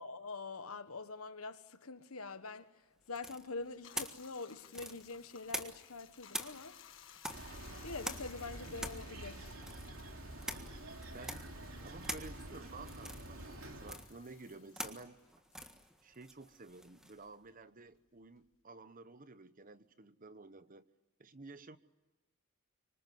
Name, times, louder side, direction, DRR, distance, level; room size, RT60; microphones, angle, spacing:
voice 1, 0.0-6.8 7.8-9.6, left 3 dB, 85° left, 1.5 m, -45 dB
sound 1, 3.2-6.0 6.3-17.3, equal, 5° right, 1.6 m, -46 dB
Bathtub (filling or washing), 3.6-16.5 16.8-18.6, left 9 dB, 65° left, 1.6 m, -60 dB
sound 2, 7.3-14.0, right 1 dB, 70° right, 3.0 m, -48 dB
voice 2, 11.1-15.2 16.0-20.9 21.2-21.8, right 3 dB, 40° right, 1.0 m, -52 dB
25.5 x 25.0 x 9.4 m
head